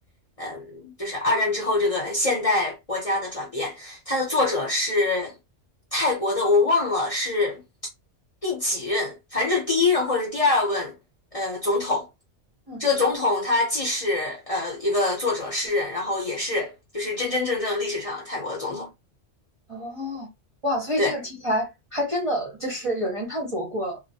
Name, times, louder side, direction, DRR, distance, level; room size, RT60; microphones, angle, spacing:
voice 1, 0.4-5.3 5.9-7.6 8.4-10.9 11.3-12.1 12.8-18.9 21.0-21.1, left 2 dB, 35° left, 0.7 m, -24 dB
voice 2, 19.7-20.3 20.6-24.0, equal, 35° right, 0.6 m, -28 dB
2.2 x 2.1 x 2.7 m
omnidirectional pair, 1.3 m